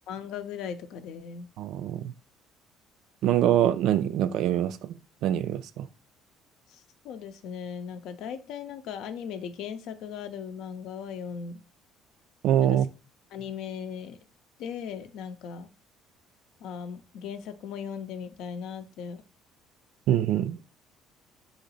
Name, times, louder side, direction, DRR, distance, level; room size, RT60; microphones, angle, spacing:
voice 1, 0.1-1.5 7.0-11.6 12.6-12.8 13.3-14.2 14.6-15.7 16.6-19.2, left 7 dB, 70° left, 0.5 m, -38 dB
voice 2, 1.6-2.1 3.2-5.9 12.4-12.9 20.1-20.6, right 11 dB, 65° right, 0.3 m, -24 dB
4.0 x 2.9 x 4.0 m
hypercardioid pair, 60°, 0 cm